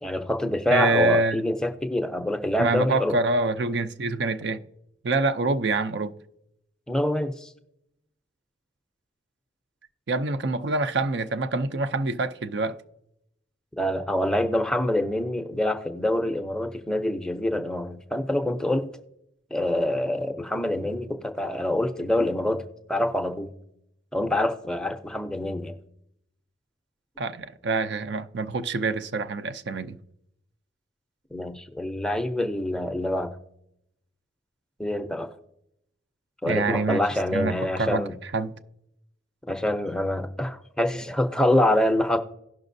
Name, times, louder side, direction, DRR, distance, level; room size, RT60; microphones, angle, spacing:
voice 1, 0.0-3.2 6.9-7.5 13.8-18.9 19.5-22.6 22.9-23.5 24.1-25.7 31.3-33.4 34.8-35.3 36.4-38.2 39.5-42.2, left 1 dB, 5° left, 0.6 m, -26 dB
voice 2, 0.7-1.4 2.6-4.6 5.0-6.1 10.1-12.8 27.2-30.0 36.5-37.0 37.3-38.0 38.3-38.5, right 3 dB, 60° right, 0.5 m, -26 dB
17.5 x 5.9 x 2.6 m
head